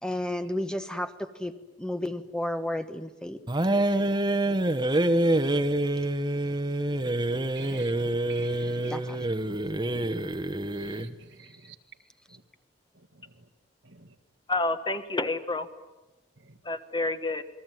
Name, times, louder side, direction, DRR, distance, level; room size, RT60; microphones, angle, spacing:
voice 1, 0.0-1.5 1.8-3.4 8.6-9.2, left 1 dB, 5° left, 1.2 m, -32 dB
sound 1, 3.5-11.1, right 1 dB, 25° right, 1.2 m, -26 dB
voice 2, 7.5-7.9 8.3-8.9 10.3-10.4 10.6-11.8 12.3-12.4 13.0-13.5 13.8-14.2 16.4-16.6, right 5 dB, 80° right, 1.9 m, -51 dB
voice 3, 14.5-15.7 16.6-17.4, left 2 dB, 25° left, 1.4 m, -29 dB
28.5 x 21.5 x 9.3 m
head